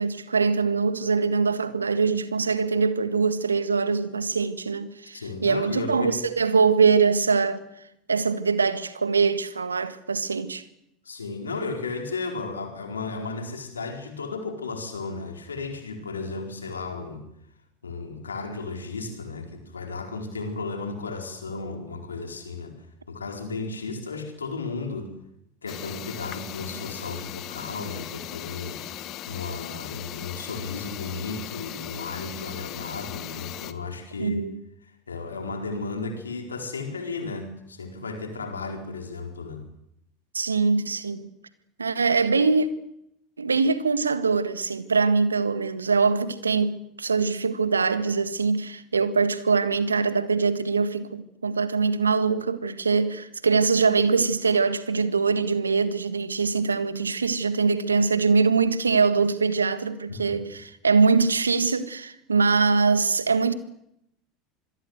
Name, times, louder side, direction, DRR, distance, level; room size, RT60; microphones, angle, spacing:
voice 1, 0.0-7.6 8.1-10.6 34.2-34.5 40.3-41.3 41.8-42.7 43.4-63.5, right 4 dB, 85° right, 1.7 m, -23 dB
voice 2, 5.1-6.2 11.0-17.2 17.8-22.8 23.1-25.1 25.6-28.8 29.3-34.4 35.1-39.7 60.1-60.3, left 3 dB, 85° left, 4.4 m, -34 dB
sound 1, 25.7-33.7, left 13 dB, 50° left, 1.8 m, -38 dB
26.5 x 21.5 x 8.1 m
figure-of-eight pair, 75°, 0 cm